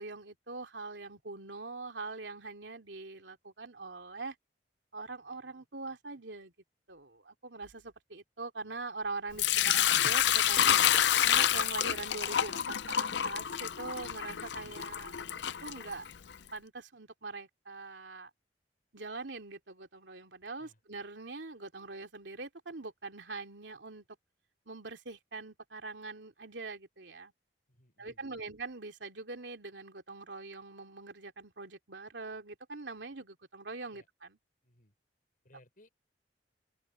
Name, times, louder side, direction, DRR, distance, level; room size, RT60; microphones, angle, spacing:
voice 1, 0.0-4.3 4.9-6.5 6.9-10.8 11.2-15.1 15.6-16.1 16.5-18.3 18.9-24.0 24.7-27.3 28.0-34.4, right 3 dB, 85° right, 2.9 m, -43 dB
Sink (filling or washing) / Liquid, 9.4-16.3, left 10 dB, 75° left, 0.6 m, -28 dB
voice 2, 27.7-28.5 33.9-34.1 34.6-34.9 35.4-35.9, left 1 dB, 50° left, 6.3 m, -63 dB
head